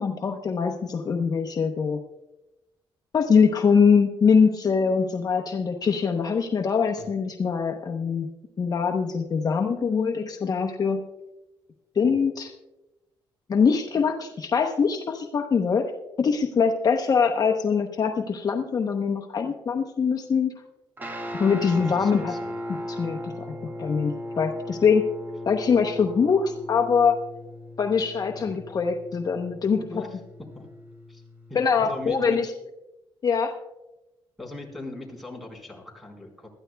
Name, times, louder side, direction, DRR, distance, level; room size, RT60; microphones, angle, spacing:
voice 1, 0.0-2.0 3.1-8.3 8.6-11.0 12.0-12.5 13.5-15.9 16.2-20.5 21.3-22.3 22.9-25.0 25.5-27.2 27.8-29.9 31.5-32.5 33.2-33.5, left 6 dB, 45° left, 4 dB, 0.9 m, -23 dB
Guitar, 21.0-32.4, left 1 dB, 20° right, 1.7 m, -38 dB
voice 2, 21.6-22.6 26.0-26.1 28.4-28.5 29.9-30.7 31.1-31.2 31.5-32.5 34.4-36.5, left 2 dB, ahead, 2 dB, 4.3 m, -40 dB
20.5 x 13.5 x 2.3 m, 0.99 s
cardioid pair, 100°, 9 cm